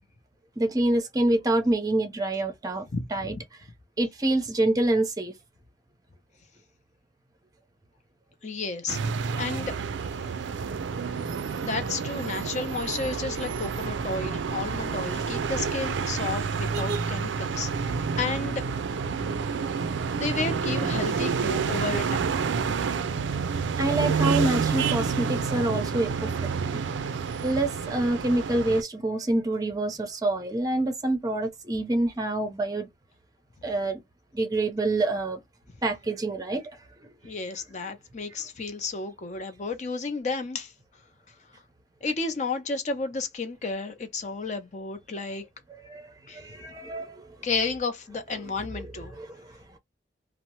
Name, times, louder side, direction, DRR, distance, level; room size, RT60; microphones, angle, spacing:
voice 1, 0.6-3.4 4.0-5.3 23.0-23.1 23.8-26.8 27.4-32.9 33.6-34.0 34.3-35.4 35.8-36.7 45.9-46.1 46.3-47.2 49.2-49.3, right 2 dB, 20° right, 0.5 m, -26 dB
voice 2, 8.4-9.0 9.4-9.7 11.6-18.7 20.2-22.4 37.2-40.7 42.0-45.4 46.3-46.5 47.4-49.1, left 4 dB, 40° left, 0.5 m, -32 dB
sound 1, 8.9-28.8, right 5 dB, 85° right, 0.4 m, -29 dB
2.7 x 2.0 x 2.8 m
head